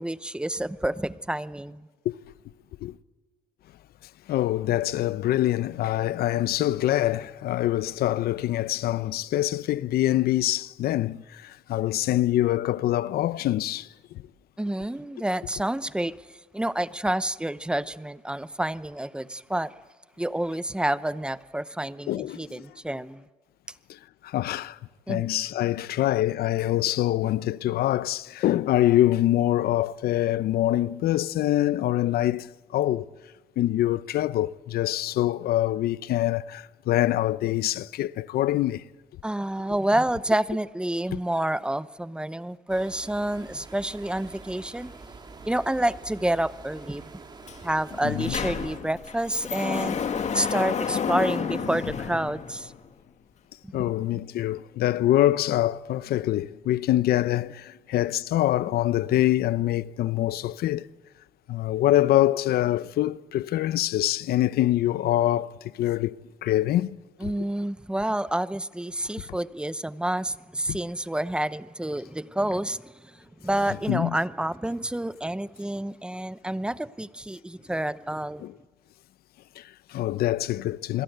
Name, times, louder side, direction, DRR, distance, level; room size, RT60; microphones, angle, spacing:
voice 1, 0.0-1.9 14.6-16.2 16.5-19.7 20.2-23.2 25.1-25.3 39.2-44.9 45.4-47.1 47.6-50.0 50.3-52.7 53.6-53.7 67.2-78.4, right 1 dB, 5° right, 0.7 m, -29 dB
voice 2, 4.3-13.9 22.1-22.6 23.9-24.8 25.1-33.1 33.6-38.8 48.0-48.3 53.7-60.9 61.5-66.1 66.4-66.9 67.2-67.3 70.7-70.8 73.9-74.2 78.4-78.5 79.6-81.0, left 14 dB, 65° left, 0.7 m, -25 dB
sound 1, 42.7-48.8, right 3 dB, 25° right, 2.8 m, -46 dB
Sliding door, 47.5-47.6 47.9-52.9, left 7 dB, 45° left, 2.1 m, -30 dB
27.0 x 22.0 x 8.0 m
cardioid pair, 110°, 17 cm